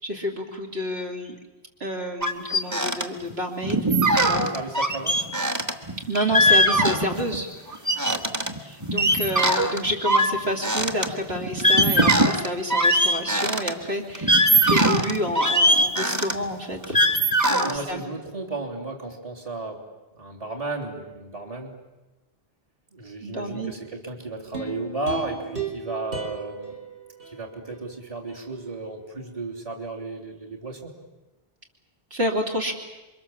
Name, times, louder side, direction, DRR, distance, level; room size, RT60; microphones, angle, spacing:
voice 1, 0.0-1.4 1.8-3.8 4.3-4.5 6.1-7.5 8.6-17.0 17.5-18.0 23.2-23.7 32.1-32.7, equal, 80° right, 1 dB, 3.1 m, -29 dB
sound 1, 2.2-3.0 3.3-3.4 3.6-7.4 7.7-13.7 14.1-17.8, right 1 dB, 15° right, 1.5 m, -21 dB
voice 2, 4.5-5.2 8.1-8.2 17.6-19.8 20.1-21.7 22.9-26.7 27.3-30.9, right 3 dB, 35° right, -1 dB, 3.4 m, -34 dB
sound 2, 24.5-27.8 28.3-28.4, right 3 dB, 60° right, 3.7 m, -35 dB
28.0 x 24.0 x 7.3 m, 1.1 s
omnidirectional pair, 1.0 m